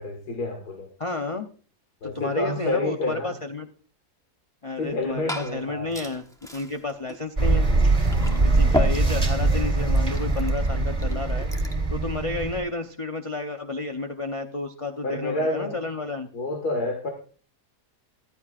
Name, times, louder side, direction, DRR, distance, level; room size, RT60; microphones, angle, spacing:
voice 1, 0.0-0.9 2.0-3.3 4.8-5.9 8.6-8.8 15.0-15.8 16.3-17.1, left 2 dB, 75° left, 4 dB, 2.4 m, -29 dB
voice 2, 1.0-1.5 2.0-3.7 4.6-6.2 6.5-7.7 8.4-11.5 11.9-16.3, left 3 dB, 35° left, 5 dB, 0.5 m, -31 dB
Liquid, 4.8-11.9, left 1 dB, ahead, 1.0 m, -35 dB
sound 1, 7.4-12.6, right 3 dB, 25° right, 2.5 m, -22 dB
14.5 x 13.5 x 2.5 m, 0.40 s
omnidirectional pair, 1.7 m